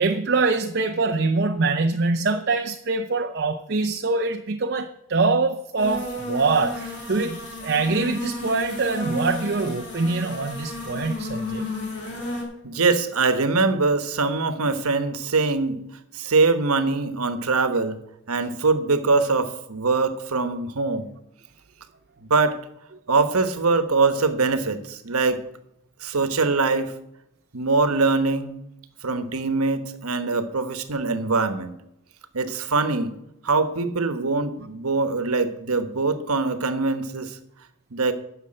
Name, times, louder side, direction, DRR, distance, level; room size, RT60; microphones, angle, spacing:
voice 1, 0.0-11.7, right 3 dB, 50° right, 0.6 m, -24 dB
sound 1, 5.8-12.4, left 1 dB, 50° left, 3.2 m, -32 dB
voice 2, 12.6-15.8 16.1-18.0 18.3-21.1 22.3-22.6 23.1-25.4 26.0-26.9 27.5-28.6 29.0-31.7 32.3-33.1 33.4-37.4 37.9-38.1, right 3 dB, 80° right, 1.1 m, -23 dB
10.5 x 6.7 x 7.6 m
head